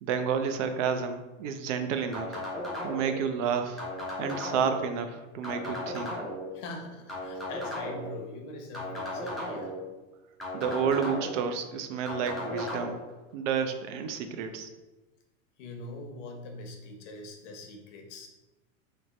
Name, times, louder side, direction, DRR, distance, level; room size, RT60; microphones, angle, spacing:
voice 1, 0.0-2.4 2.8-3.8 4.2-6.2 10.5-13.0 13.3-14.7, right 6 dB, 65° right, 7 dB, 0.5 m, -30 dB
sound 1, 2.1-3.2 3.8-4.8 5.4-6.5 7.1-8.1 8.7-9.8 10.4-11.4 12.1-12.9, left 1 dB, ahead, 0.4 m, -35 dB
voice 2, 6.5-9.7 15.6-18.3, left 2 dB, 65° left, 2 dB, 0.9 m, -43 dB
3.3 x 2.1 x 3.9 m, 1.1 s
supercardioid pair, 130°, 39 cm